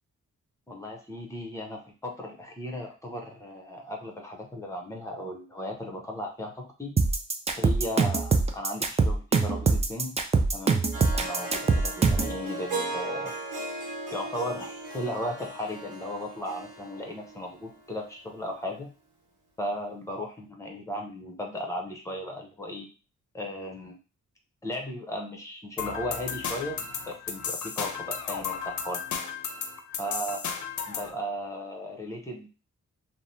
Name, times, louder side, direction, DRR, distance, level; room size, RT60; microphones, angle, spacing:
voice 1, 0.7-6.9 7.5-10.2 10.5-13.3 14.1-18.9 19.6-22.9 23.3-24.0 24.6-29.0 30.0-30.4 30.9-32.5, left 1 dB, 10° left, 2 dB, 0.7 m, -36 dB
sound 1, 7.0-12.3, right 4 dB, 20° right, 0.3 m, -23 dB
Harp, 10.9-18.1, right 2 dB, 80° right, 0.8 m, -37 dB
sound 2, 25.8-31.1, left 6 dB, 70° left, 0.5 m, -34 dB
3.2 x 2.0 x 2.7 m, 0.34 s
cardioid pair, 110°, 30 cm